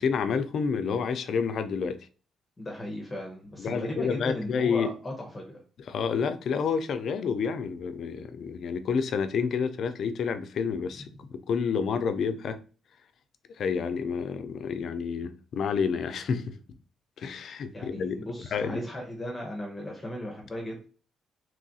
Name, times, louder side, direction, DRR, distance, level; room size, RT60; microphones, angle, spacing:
voice 1, 0.0-2.0 3.6-4.9 5.9-12.6 13.6-16.6 17.2-18.2 18.5-18.8, left 6 dB, 65° left, 0.3 m, -29 dB
voice 2, 2.6-5.5 11.0-11.1 17.7-20.9, left 1 dB, 20° left, 0.8 m, -36 dB
3.0 x 2.3 x 2.6 m
cardioid pair, 90°, 0 cm